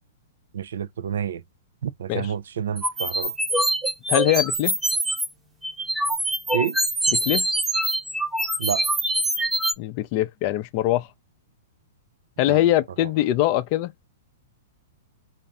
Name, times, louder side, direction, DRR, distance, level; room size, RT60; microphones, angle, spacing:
voice 1, 0.5-1.4 1.8-3.3 6.5-6.8 8.6-8.9 12.5-12.6 13.0-13.1, right 9 dB, 75° right, 0.4 m, -28 dB
sound 1, 2.8-5.3 5.6-9.7, right 1 dB, 10° right, 0.8 m, -24 dB
voice 2, 4.1-4.8 7.1-7.5 9.8-11.1 12.4-13.9, left 14 dB, 45° left, 0.5 m, -22 dB
3.9 x 2.5 x 3.4 m
hypercardioid pair, 130°, 0 cm